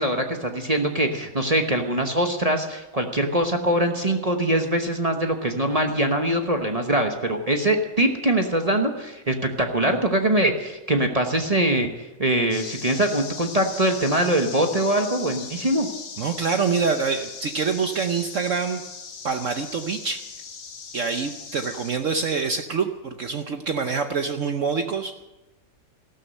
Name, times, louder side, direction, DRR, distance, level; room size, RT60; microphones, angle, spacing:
voice 1, 0.0-11.9 12.2-15.9, right 1 dB, 25° right, 4 dB, 0.8 m, -23 dB
sound 1, 12.5-21.9, left 5 dB, 75° left, 2.2 m, -39 dB
voice 2, 16.2-18.8 19.2-20.2 20.9-25.1, right 5 dB, 60° right, 7 dB, 0.8 m, -25 dB
14.5 x 12.5 x 6.6 m, 1.0 s
omnidirectional pair, 2.1 m